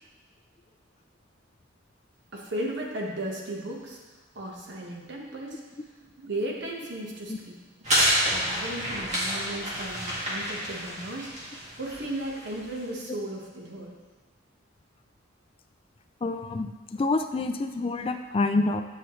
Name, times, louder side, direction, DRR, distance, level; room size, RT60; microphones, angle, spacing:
voice 1, 2.3-4.0 4.3-5.6 6.2-7.6 8.3-11.3 11.8-13.9, right 1 dB, 60° right, -1 dB, 1.1 m, -35 dB
sound 1, 7.8-12.8, equal, 35° right, 1.9 m, -29 dB
voice 2, 16.2-18.8, left 3 dB, 30° left, 7 dB, 0.3 m, -27 dB
8.4 x 5.7 x 3.1 m, 1.3 s
head